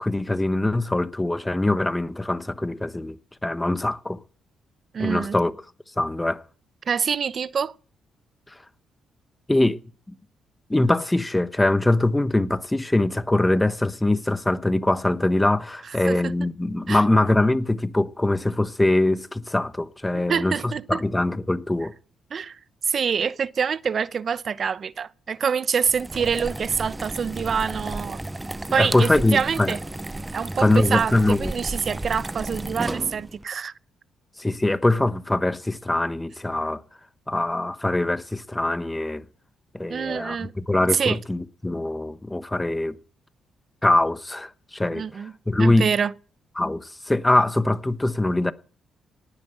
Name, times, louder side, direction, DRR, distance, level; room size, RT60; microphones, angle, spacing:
voice 1, 0.0-3.2 3.4-4.2 5.0-5.5 6.0-6.4 9.5-9.8 10.7-21.9 28.8-29.8 30.6-31.5 34.4-36.8 37.3-39.2 39.7-43.0 43.8-45.9 46.6-48.5, left 2 dB, 10° left, 1.1 m, -23 dB
voice 2, 4.9-5.3 6.9-7.7 16.1-16.3 16.9-17.0 20.1-21.0 22.3-22.6 22.8-28.2 28.7-29.8 30.3-33.7 39.9-40.5 40.9-41.2 44.9-45.3 45.6-46.1, right 6 dB, 50° right, 0.8 m, -26 dB
sound 1, 25.8-33.4, right 2 dB, 15° right, 0.7 m, -33 dB
18.5 x 9.5 x 7.9 m
cardioid pair, 90°, 0 cm